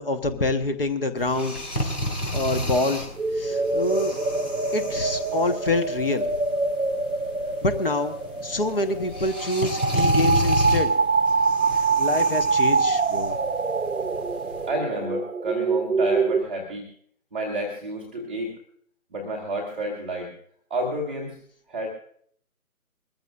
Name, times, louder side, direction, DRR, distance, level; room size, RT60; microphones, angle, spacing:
voice 1, 0.0-2.0 2.3-3.1 3.3-4.2 4.7-6.3 7.6-8.2 8.4-10.9 11.8-13.3, left 2 dB, 40° left, 9 dB, 1.3 m, -26 dB
sound 1, 1.2-14.7, equal, 85° left, 4.6 m, -32 dB
sound 2, 3.2-16.4, right 4 dB, 65° right, 0.8 m, -25 dB
voice 2, 14.7-16.9 17.3-18.6 19.1-20.3 20.7-21.4 21.7-21.9, right 1 dB, 5° right, -7 dB, 0.9 m, -30 dB
22.5 x 14.5 x 2.4 m, 0.62 s
figure-of-eight pair, 150°, 44 cm